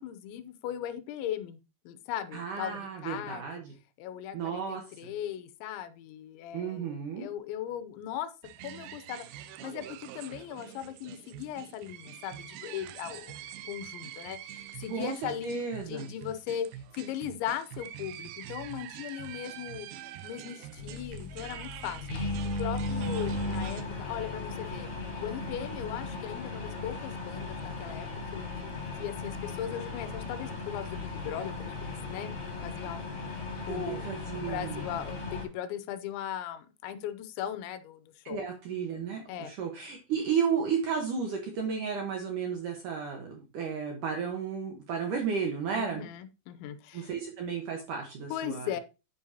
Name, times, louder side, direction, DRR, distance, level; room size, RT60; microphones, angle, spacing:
voice 1, 0.0-1.6 1.9-3.6 4.0-8.3 8.6-9.3 9.6-16.7 16.9-19.9 20.2-22.1 22.6-24.9 25.2-28.1 28.3-28.7 29.0-32.3 32.6-33.0 33.7-38.4 39.3-39.5 45.7-47.1 48.3-48.8, left 10 dB, 85° left, 12 dB, 3.0 m, -38 dB
voice 2, 2.3-3.7 4.3-5.1 6.5-7.3 14.9-15.1 15.4-16.1 33.7-34.8 38.3-46.0 46.9-48.7, right 6 dB, 70° right, 2 dB, 2.1 m, -33 dB
sound 1, 8.4-23.8, right 11 dB, 90° right, 2.2 m, -45 dB
sound 2, 20.8-35.4, left 3 dB, 30° left, 3.9 m, -37 dB
9.0 x 8.6 x 2.8 m, 0.28 s
omnidirectional pair, 5.2 m